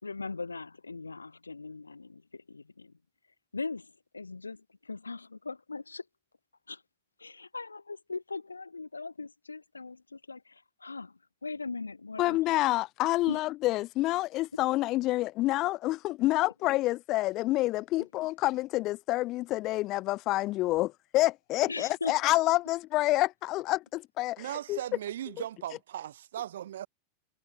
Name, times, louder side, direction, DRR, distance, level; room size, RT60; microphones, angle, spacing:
voice 1, 0.0-3.0 3.5-6.1 6.7-6.8 7.2-12.4 13.3-13.4 14.5-14.6 18.0-18.1 21.7-22.2, left 3 dB, 80° left, 2.3 m, -40 dB
voice 2, 12.2-24.8, left 18 dB, 35° left, 0.6 m, -28 dB
voice 3, 24.4-26.9, right 11 dB, 60° right, 0.6 m, -38 dB
figure-of-eight pair, 90°, 0 cm